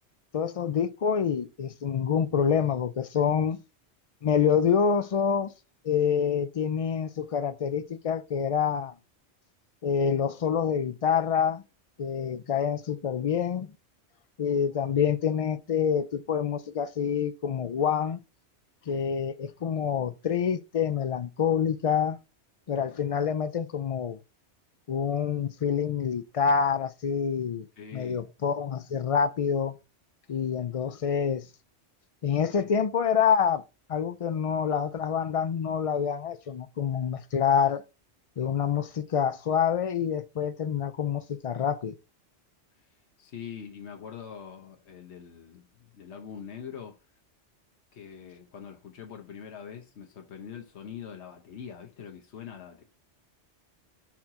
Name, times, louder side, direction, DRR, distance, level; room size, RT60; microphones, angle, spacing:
voice 1, 0.3-3.6 4.2-5.5 5.8-8.9 9.8-11.6 12.0-13.7 14.4-18.2 18.9-22.2 22.7-24.2 24.9-27.7 27.9-29.8 30.3-31.5 32.2-33.6 33.9-37.8 38.4-41.9, left 7 dB, 50° left, 0.4 m, -27 dB
voice 2, 27.8-28.2 43.2-47.0 47.9-52.8, left 7 dB, 75° left, 1.2 m, -43 dB
5.8 x 4.4 x 3.7 m
omnidirectional pair, 1.2 m